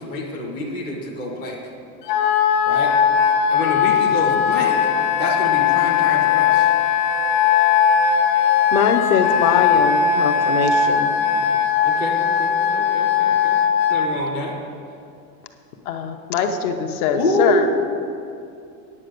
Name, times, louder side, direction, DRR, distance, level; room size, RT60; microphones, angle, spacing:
voice 1, 0.0-1.6 2.7-2.9 3.5-4.8 5.2-6.7 11.8-13.6 13.9-14.5 17.1-17.7, left 1 dB, 10° left, -4 dB, 0.3 m, -26 dB
Wind instrument woodwind instrument, 2.1-14.1, left 7 dB, 85° left, 1.0 m, -18 dB
voice 2, 8.7-11.1, left 7 dB, 40° left, 5 dB, 0.7 m, -21 dB
voice 3, 15.9-17.7, left 7 dB, 65° left, 6 dB, 1.1 m, -23 dB
9.8 x 7.7 x 6.6 m, 2.5 s
supercardioid pair, 175°, 47 cm